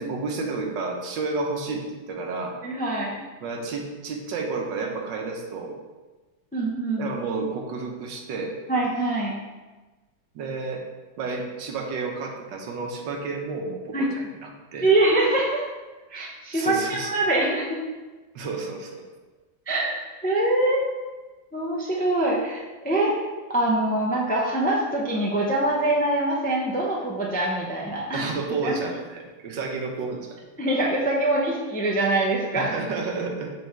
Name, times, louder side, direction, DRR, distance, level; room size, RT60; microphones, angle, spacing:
voice 1, 0.0-2.6 3.4-5.8 7.0-8.6 10.3-10.8 11.2-14.9 16.5-17.1 18.3-19.0 28.1-30.4 32.5-33.5, right 4 dB, 85° right, 2 dB, 1.5 m, -31 dB
voice 2, 2.6-3.2 6.5-7.1 8.7-9.4 13.9-14.2 14.8-15.6 16.1-17.8 19.7-20.8 21.5-23.1 23.5-28.2 28.6-28.7 30.6-32.7, right 1 dB, 15° left, -3 dB, 0.3 m, -24 dB
7.1 x 3.6 x 4.5 m, 1.2 s
omnidirectional pair, 2.0 m